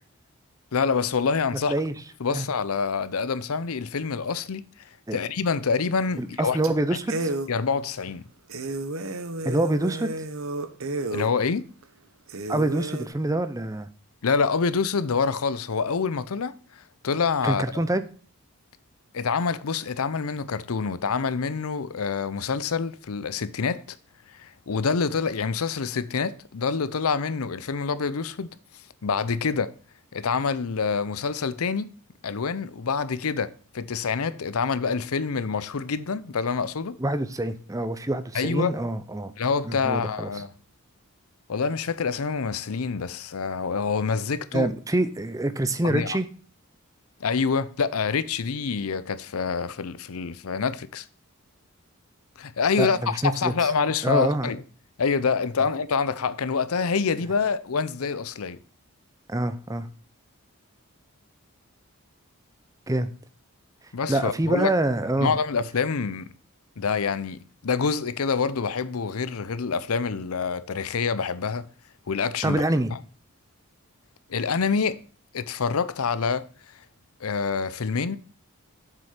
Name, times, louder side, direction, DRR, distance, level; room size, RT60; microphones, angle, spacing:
voice 1, 0.7-1.7 2.2-6.6 7.5-8.3 11.1-11.6 14.2-17.6 19.1-23.8 24.3-29.7 30.1-31.9 32.2-37.0 38.3-38.8 39.4-40.5 41.5-44.7 45.8-46.2 47.2-51.1 52.4-54.6 55.0-58.6 63.9-64.7 65.2-66.3 66.8-71.7 72.1-72.6 72.9-73.0 74.3-75.0 75.3-76.8 77.2-78.2, left 5 dB, 75° left, 0.6 m, -26 dB
sound 1, 6.0-6.3 6.6-6.7 7.1-7.5 8.0-8.1 8.5-11.3 11.8-11.9 12.3-13.1, right 2 dB, 65° right, 1.0 m, -31 dB
voice 2, 6.2-7.3 9.4-10.1 12.5-13.9 17.4-18.0 37.0-39.3 39.7-40.3 44.5-46.3 52.8-53.5 54.0-54.5 59.3-59.9 62.9-63.1 64.1-65.3 72.4-72.9, right 1 dB, 15° right, 0.6 m, -26 dB
7.5 x 6.3 x 5.8 m
head